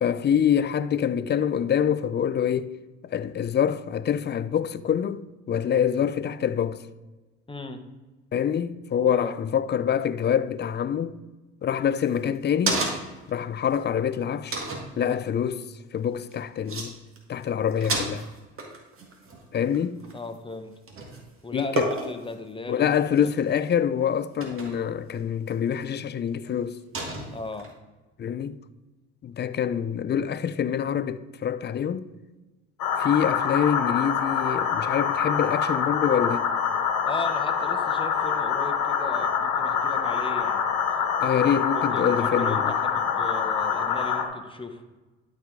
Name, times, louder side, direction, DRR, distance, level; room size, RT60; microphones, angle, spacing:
voice 1, 0.0-2.7 3.0-6.8 8.3-11.2 11.6-12.9 13.3-14.6 15.0-15.6 15.9-16.9 17.3-18.3 19.5-20.0 21.5-21.9 22.7-26.8 28.2-28.6 29.2-32.1 33.0-36.5 41.2-42.7, left 8 dB, 30° left, 0.5 m, -25 dB
voice 2, 7.5-7.8 9.1-9.3 20.1-20.7 21.4-23.3 27.3-27.7 37.0-40.6 41.7-44.8, left 2 dB, 15° left, 1.1 m, -37 dB
sound 1, 11.9-13.3 13.7-13.8 14.5-14.9 16.3-16.4 16.7-16.9 17.2-17.4 17.7-20.5 20.9-21.3 21.8-22.3 23.1-23.6 24.4-24.9 25.5-25.6 26.9-27.7, right 2 dB, 40° right, 1.8 m, -31 dB
sound 2, 32.8-44.3, left 7 dB, 60° left, 1.3 m, -25 dB
11.5 x 4.8 x 3.8 m
supercardioid pair, 70°, 34 cm